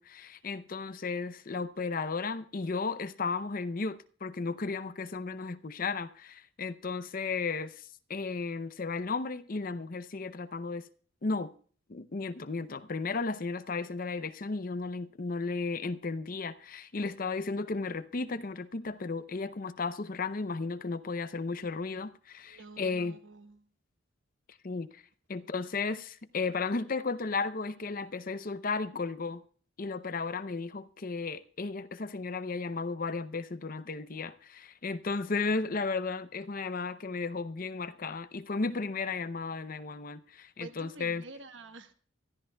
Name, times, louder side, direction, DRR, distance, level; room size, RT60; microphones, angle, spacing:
voice 1, 0.0-7.8 8.1-10.9 11.2-11.5 11.9-23.2 24.6-25.0 25.3-29.4 29.8-41.2, left 4 dB, 45° left, 0.6 m, -34 dB
voice 2, 22.5-23.7 40.6-41.9, right 3 dB, 65° right, 1.2 m, -48 dB
24.5 x 13.5 x 2.3 m
head